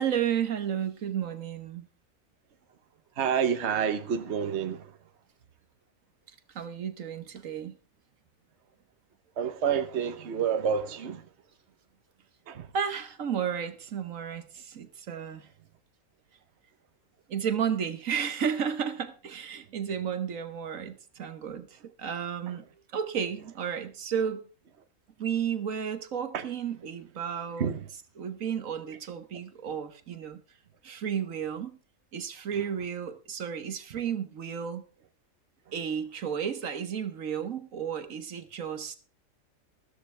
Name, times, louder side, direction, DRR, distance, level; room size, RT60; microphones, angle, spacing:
voice 1, 0.0-1.9 6.5-7.8 12.7-15.5 17.3-22.6 22.9-24.4 25.2-27.7 28.2-30.4 30.8-31.8 32.1-34.8 35.7-39.0, right 8 dB, 75° right, 1.5 m, -32 dB
voice 2, 3.2-4.9 9.4-11.2 12.5-12.7 26.3-26.4 27.6-27.8, right 7 dB, 55° right, 1.2 m, -28 dB
14.0 x 13.5 x 3.3 m
omnidirectional pair, 1.4 m